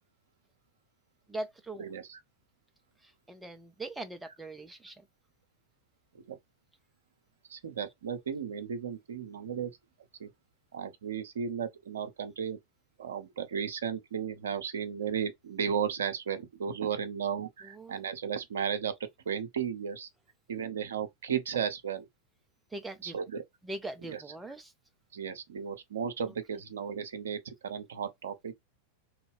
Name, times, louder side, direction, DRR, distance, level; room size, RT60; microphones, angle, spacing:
voice 1, 1.3-1.9 3.3-5.0 17.7-18.0 22.7-23.1 23.6-24.7, right 2 dB, 10° right, 0.5 m, -41 dB
voice 2, 1.8-2.2 6.3-6.4 7.5-9.7 10.2-10.3 10.7-12.6 13.0-18.9 19.3-20.1 20.5-22.1 23.0-23.4 24.0-24.2 25.1-28.5, right 7 dB, 65° right, 0.6 m, -34 dB
3.0 x 2.3 x 3.3 m
figure-of-eight pair, 90°, 0 cm